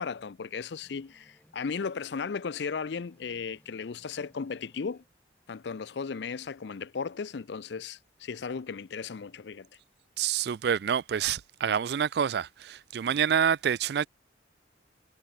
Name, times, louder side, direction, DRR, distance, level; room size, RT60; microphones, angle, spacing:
voice 1, 0.0-5.0 5.5-9.7, left 5 dB, 65° left, 0.5 m, -36 dB
sound 1, 0.8-1.7 2.2-2.3 2.6-2.7 2.9-5.2 5.5-6.5, equal, 10° left, 3.8 m, -64 dB
voice 2, 10.2-14.1, right 8 dB, 60° right, 0.3 m, -27 dB
head